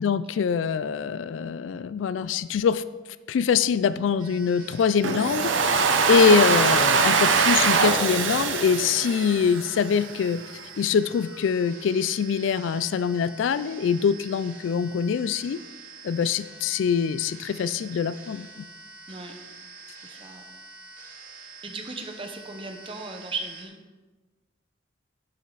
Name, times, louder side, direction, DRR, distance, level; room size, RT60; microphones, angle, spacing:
voice 1, 0.0-2.8 3.3-5.5 6.1-10.4 10.8-15.6 16.0-18.6, left 6 dB, 80° left, 15 dB, 0.3 m, -24 dB
sound 1, 4.2-23.6, right 4 dB, 45° right, 2.2 m, -46 dB
Domestic sounds home sounds, 5.0-10.0, right 5 dB, 90° right, 0.9 m, -22 dB
voice 2, 19.1-19.4 20.0-20.4 21.6-23.8, right 3 dB, 30° right, 5 dB, 1.0 m, -37 dB
11.0 x 7.6 x 4.0 m, 1.3 s
head